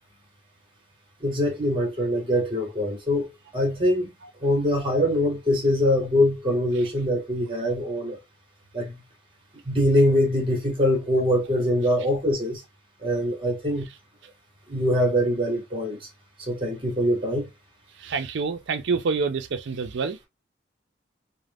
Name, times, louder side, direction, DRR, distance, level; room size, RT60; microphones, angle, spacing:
voice 1, 1.2-4.1 4.4-8.2 8.7-8.9 9.6-12.6 13.0-13.8 14.7-16.1 16.4-17.5, equal, 30° right, 1.1 m, -23 dB
voice 2, 18.0-20.3, right 5 dB, 70° right, 0.4 m, -27 dB
2.4 x 2.1 x 3.4 m
head